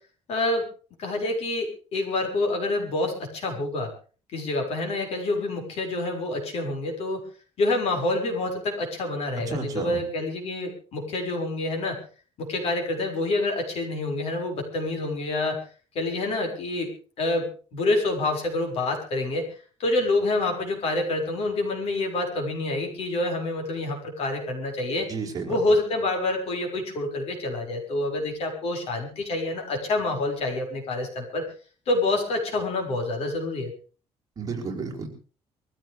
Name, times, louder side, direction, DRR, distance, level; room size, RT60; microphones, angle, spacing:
voice 1, 0.3-0.7 1.0-3.9 4.3-7.2 7.6-12.0 12.4-15.6 15.9-16.9 17.2-17.5 17.7-19.4 19.8-25.1 25.5-31.4 31.9-33.7, left 2 dB, 60° left, 3 dB, 6.5 m, -27 dB
voice 2, 9.4-10.0 25.1-25.6 34.4-35.1, right 4 dB, 30° right, 0 dB, 4.9 m, -32 dB
23.5 x 15.5 x 3.6 m, 0.38 s
cardioid pair, 160°, 12 cm